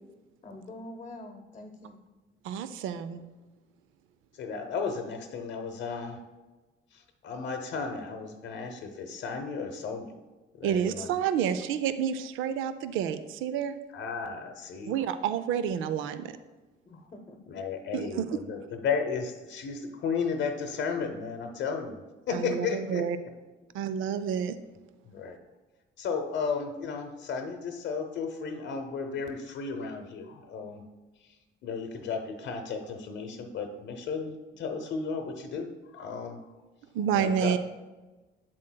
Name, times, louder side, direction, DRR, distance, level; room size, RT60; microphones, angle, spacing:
voice 1, 0.4-2.0 16.9-17.4, left 1 dB, 30° left, 3 dB, 0.8 m, -45 dB
voice 2, 2.4-3.2 10.6-13.8 14.8-16.4 17.9-18.4 22.3-23.2 23.7-24.6 36.9-37.6, right 8 dB, 90° right, 12 dB, 0.4 m, -29 dB
voice 3, 4.3-6.2 6.9-10.1 10.5-11.2 13.9-15.0 17.5-22.0 22.3-23.0 25.1-25.4 26.0-30.8 31.6-36.4 37.1-37.6, left 5 dB, 70° left, 4 dB, 0.7 m, -34 dB
7.6 x 7.4 x 2.2 m, 1.2 s
cardioid pair, 90°, 20 cm